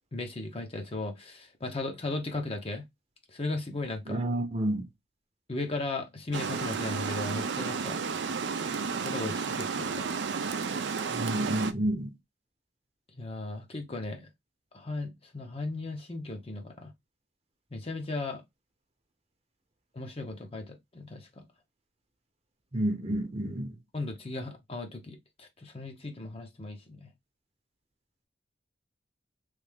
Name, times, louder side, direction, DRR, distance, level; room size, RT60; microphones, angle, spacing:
voice 1, 0.1-2.8 3.3-4.2 5.5-8.0 9.0-10.1 13.2-14.3 14.7-16.9 17.7-18.4 19.9-21.5 23.9-27.1, left 2 dB, 35° left, 0.8 m, -36 dB
voice 2, 4.1-4.8 11.1-12.1 22.7-23.7, right 1 dB, 35° right, 0.9 m, -30 dB
Water, 6.3-11.7, right 5 dB, 70° right, 0.5 m, -32 dB
3.3 x 2.6 x 3.5 m
head